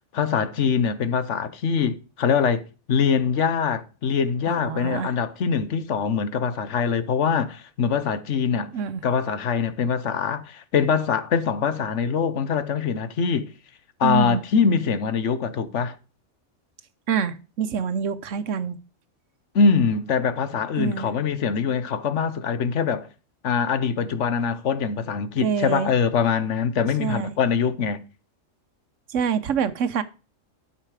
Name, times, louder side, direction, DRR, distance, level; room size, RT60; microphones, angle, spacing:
voice 1, 0.1-2.6 2.9-8.7 9.0-13.5 14.0-15.9 19.5-23.1 23.4-28.0, left 6 dB, 70° left, 1.3 m, -23 dB
voice 2, 4.5-5.1 8.7-9.0 14.0-14.4 17.1-18.8 20.8-21.1 25.4-25.9 27.0-27.3 29.1-30.0, right 7 dB, 80° right, 1.2 m, -26 dB
12.5 x 5.7 x 4.9 m
omnidirectional pair, 1.3 m